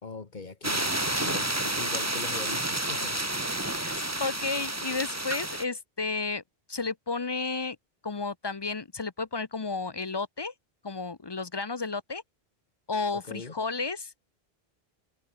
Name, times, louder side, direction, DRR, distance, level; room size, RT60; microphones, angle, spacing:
voice 1, 0.0-3.3 13.1-13.5, left 4 dB, 50° left, 1.9 m, -41 dB
sound 1, 0.6-5.6, right 1 dB, 15° right, 1.5 m, -30 dB
voice 2, 4.2-6.4 6.7-7.8 8.0-10.5 10.8-12.2 12.9-14.1, left 4 dB, 30° left, 0.6 m, -32 dB
omnidirectional pair, 1.0 m